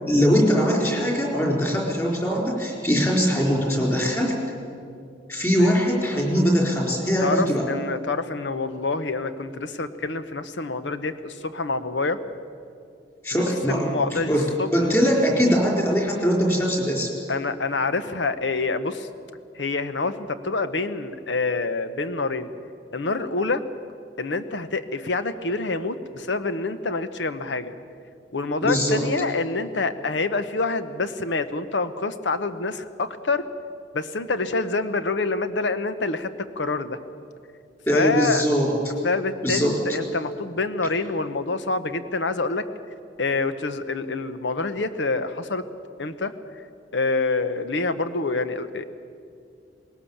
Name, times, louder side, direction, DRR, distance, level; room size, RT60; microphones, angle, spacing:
voice 1, 0.1-4.4 5.3-7.7 13.2-17.1 28.6-29.0 37.9-38.7 39.4-39.9, equal, 15° left, -1 dB, 4.3 m, -22 dB
voice 2, 7.2-12.2 13.3-14.7 17.3-19.1 19.5-22.5 22.9-23.6 24.2-27.7 28.3-33.5 33.9-36.3 36.6-37.0 37.9-38.5 39.0-42.6 43.2-45.6 46.0-46.3 46.9-48.9, left 3 dB, 80° left, 11 dB, 1.0 m, -26 dB
19.5 x 18.5 x 7.3 m, 2.4 s
head